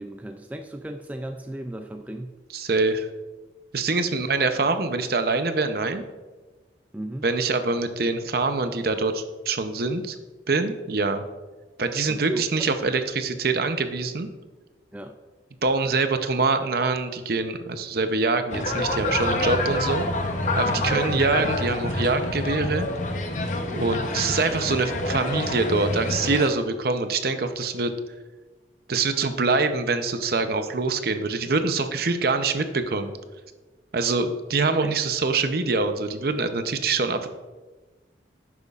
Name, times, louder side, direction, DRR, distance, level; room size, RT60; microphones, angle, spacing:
voice 1, 0.0-2.3 6.9-7.2 12.1-12.4 14.9-15.1 20.7-21.0 34.8-35.0, right 1 dB, 10° right, 6 dB, 0.3 m, -35 dB
voice 2, 2.5-3.1 3.7-6.0 7.2-10.2 10.5-11.2 11.8-14.3 15.6-20.1 20.6-22.9 23.7-27.9 28.9-33.1 33.9-37.3, right 3 dB, 55° right, 8 dB, 0.6 m, -24 dB
sound 1, 18.5-26.5, left 2 dB, 40° left, 0.7 m, -27 dB
10.5 x 8.1 x 2.4 m, 1.3 s
head